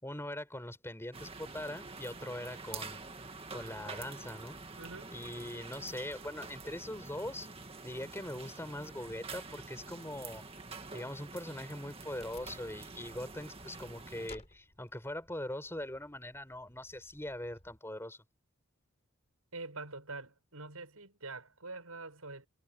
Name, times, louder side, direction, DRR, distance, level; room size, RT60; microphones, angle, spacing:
voice 1, 0.0-3.1 3.5-4.6 5.1-7.5 7.8-10.4 10.9-18.2, left 1 dB, 10° left, 7.0 m, -42 dB
sound 1, 1.1-14.3, right 4 dB, 25° right, 2.1 m, -47 dB
voice 2, 4.8-5.1 19.5-22.5, right 3 dB, 85° right, 7.2 m, -45 dB
Wood, 12.1-17.8, left 2 dB, 30° left, 6.6 m, -58 dB
head